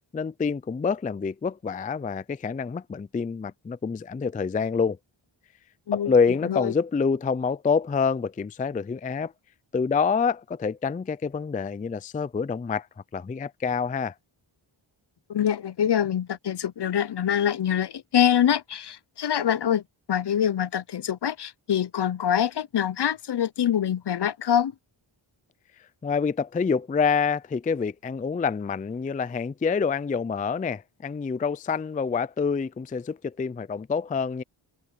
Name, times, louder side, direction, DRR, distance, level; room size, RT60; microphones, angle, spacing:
voice 1, 0.1-5.0 5.9-9.3 9.7-12.9 13.1-14.1 26.0-34.4, left 5 dB, 20° left, 0.3 m, -27 dB
voice 2, 15.3-19.8 20.1-24.7, left 9 dB, 55° left, 0.7 m, -25 dB
cardioid pair, 65°, 49 cm